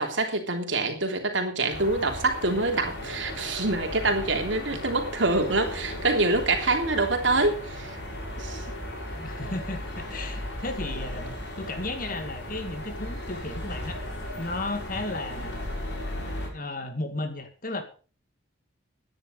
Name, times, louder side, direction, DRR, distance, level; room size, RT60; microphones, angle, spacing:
voice 1, 0.0-8.0 8.4-8.6, right 2 dB, 70° right, 3 dB, 3.3 m, -26 dB
sound 1, 1.7-16.5, left 1 dB, 60° left, 6.3 m, -36 dB
voice 2, 9.1-14.0 14.4-15.6 16.5-17.8, left 2 dB, 45° left, 8 dB, 2.2 m, -34 dB
16.5 x 10.5 x 5.2 m, 0.38 s
head